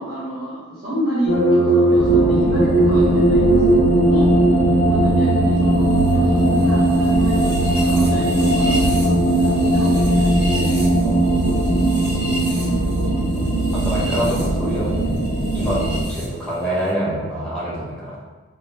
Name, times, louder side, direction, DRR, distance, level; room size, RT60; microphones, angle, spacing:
voice 1, 0.0-4.3 4.9-10.7 12.6-12.9, equal, 50° right, -12 dB, 1.0 m, -30 dB
sound 1, 1.3-16.3, right 1 dB, 85° right, 1.2 m, -18 dB
sound 2, 2.0-16.0, right 1 dB, 70° left, 0.7 m, -23 dB
voice 2, 13.7-15.1 15.5-18.3, right 1 dB, 5° left, -7 dB, 0.8 m, -26 dB
3.9 x 2.2 x 3.4 m, 1.3 s
head